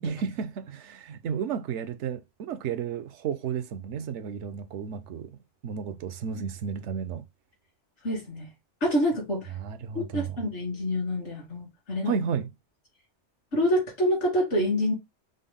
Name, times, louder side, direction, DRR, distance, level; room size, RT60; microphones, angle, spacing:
voice 1, 0.0-5.3 5.6-7.2 9.6-10.4 12.1-12.5, right 7 dB, 80° right, 0.9 m, -32 dB
voice 2, 8.0-8.5 8.8-9.5 9.9-12.2 13.5-14.9, equal, 75° left, 2.6 m, -27 dB
5.1 x 2.1 x 3.6 m
omnidirectional pair, 1.2 m